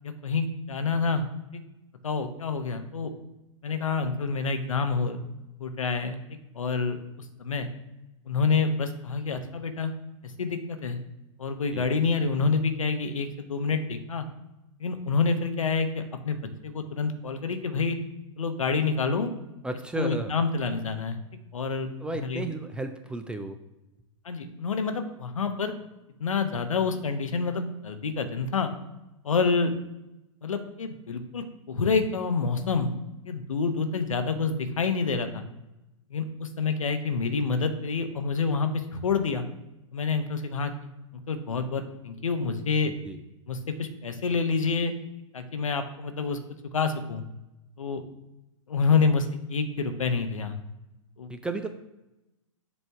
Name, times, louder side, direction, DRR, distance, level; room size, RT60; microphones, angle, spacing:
voice 1, 0.0-1.2 1.5-1.6 2.0-3.1 3.6-5.2 5.6-6.2 6.5-7.0 7.4-7.7 8.3-9.9 10.4-11.0 11.4-14.3 14.8-18.0 18.4-19.3 20.0-21.2 21.5-22.5 24.2-25.7 26.2-28.7 29.2-29.7 30.4-32.9 33.2-35.4 36.1-39.4 39.9-40.7 41.3-42.9 43.5-44.9 45.3-46.4 46.7-47.2 47.8-48.0 48.7-50.5 51.2-51.3, left 4 dB, 80° left, 7 dB, 0.9 m, -27 dB
voice 2, 19.6-20.3 22.0-23.6 42.9-43.2 51.3-51.7, right 2 dB, 5° right, 7 dB, 0.3 m, -33 dB
7.1 x 3.4 x 4.5 m, 0.95 s
hypercardioid pair, 115°, 17 cm